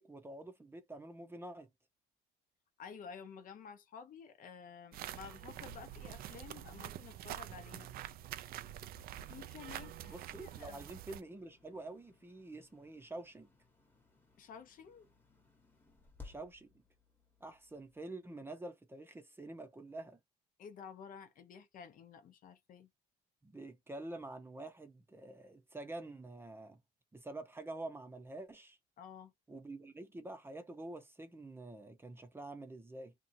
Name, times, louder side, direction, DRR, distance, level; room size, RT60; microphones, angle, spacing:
voice 1, 0.0-1.7 10.1-13.5 16.2-16.7 17.4-20.2 23.4-26.8 27.1-28.8 29.5-33.1, right 2 dB, 15° right, 0.7 m, -47 dB
voice 2, 2.8-7.9 9.3-10.8 14.4-15.1 20.6-22.9 29.0-29.3, left 6 dB, 55° left, 0.8 m, -52 dB
sound 1, 4.9-11.2, right 12 dB, 60° right, 0.4 m, -46 dB
sound 2, 7.0-18.0, left 4 dB, 10° left, 1.1 m, -62 dB
2.8 x 2.4 x 2.6 m
cardioid pair, 110°, 17 cm